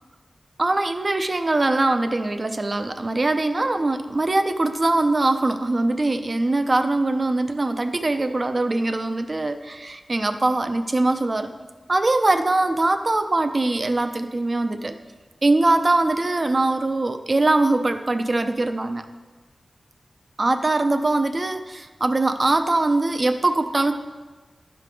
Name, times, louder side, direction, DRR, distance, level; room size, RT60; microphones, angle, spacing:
voice 1, 0.6-11.5 11.9-15.0 15.4-19.0 20.4-23.9, right 2 dB, 35° right, 8 dB, 0.5 m, -22 dB
11.0 x 5.2 x 4.6 m, 1.3 s
wide cardioid pair, 95°, 0 cm